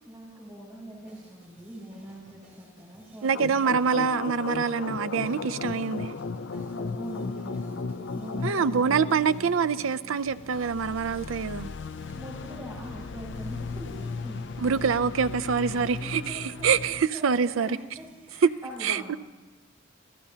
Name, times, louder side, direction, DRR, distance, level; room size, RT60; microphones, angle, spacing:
voice 1, 0.0-3.7 6.5-7.8 8.1-9.1 12.1-14.9 15.7-16.7 17.1-19.2, equal, 25° right, 4.8 m, -43 dB
sound 1, 1.0-18.5, right 1 dB, 40° right, 4.6 m, -57 dB
voice 2, 3.2-6.1 8.4-11.7 14.6-17.8 18.4-18.5 18.8-19.2, right 6 dB, 85° right, 0.5 m, -25 dB
sound 2, 3.3-17.1, left 4 dB, 60° left, 0.5 m, -36 dB
27.5 x 17.0 x 2.8 m
head